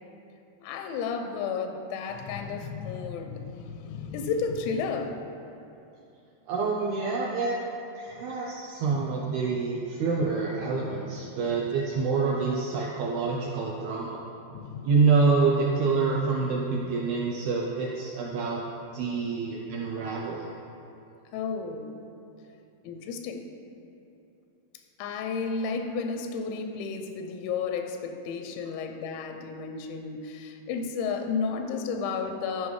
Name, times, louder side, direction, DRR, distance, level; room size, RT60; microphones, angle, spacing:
voice 1, 0.6-5.2 8.1-8.3 9.0-9.2 10.2-10.3 11.5-11.6 13.0-13.1 14.5-14.9 20.0-20.1 21.3-21.9 22.8-23.5 25.0-32.7, left 5 dB, 90° left, 6 dB, 2.9 m, -32 dB
voice 2, 6.5-7.6 8.0-14.2 14.9-18.6 18.9-20.5, right 4 dB, 80° right, -3 dB, 2.2 m, -27 dB
13.5 x 5.4 x 3.2 m, 2.8 s
omnidirectional pair, 5.1 m